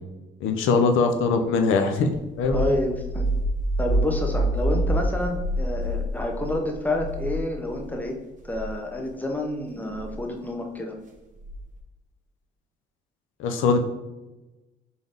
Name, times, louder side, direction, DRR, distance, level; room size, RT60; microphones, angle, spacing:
voice 1, 0.4-2.1 2.4-2.6 13.4-13.8, left 4 dB, 85° left, 6 dB, 0.5 m, -21 dB
sound 1, 2.1-8.0 8.4-8.7 9.9-10.2 11.4-11.8, right 1 dB, 40° right, 0.9 m, -27 dB
voice 2, 2.5-3.3 3.8-8.2 8.4-11.0, left 1 dB, 10° left, 2 dB, 0.8 m, -29 dB
3.8 x 3.8 x 3.5 m, 1.1 s
cardioid pair, 90°, 20 cm